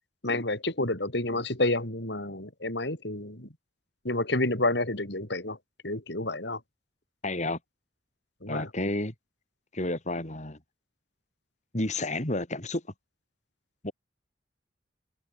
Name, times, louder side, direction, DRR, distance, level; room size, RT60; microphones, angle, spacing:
voice 1, 0.2-3.5 4.0-5.6 5.8-6.6 8.4-8.7, left 2 dB, 65° left, 6.2 m, -29 dB
voice 2, 7.2-7.6 8.5-9.1 9.7-10.6 11.7-12.8 13.8-13.9, left 2 dB, 40° left, 5.4 m, -30 dB
head